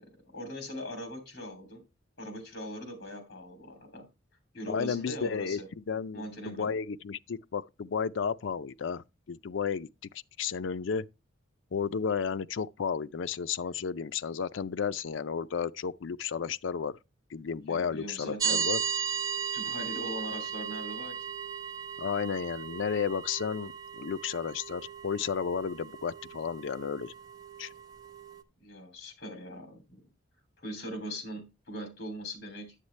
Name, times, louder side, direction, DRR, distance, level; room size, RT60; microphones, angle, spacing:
voice 1, 0.0-1.8 2.2-4.1 4.5-5.7 6.1-6.8 17.7-18.6 19.5-21.2 28.6-30.0 30.6-32.7, equal, 55° left, 2.9 m, -41 dB
voice 2, 4.7-5.6 5.9-9.9 10.4-11.1 11.7-17.0 17.3-18.8 22.0-27.1 27.6-27.7, left 6 dB, 70° left, 0.4 m, -33 dB
sound 1, 18.4-28.4, right 7 dB, 20° right, 0.7 m, -36 dB
10.0 x 8.0 x 3.2 m
head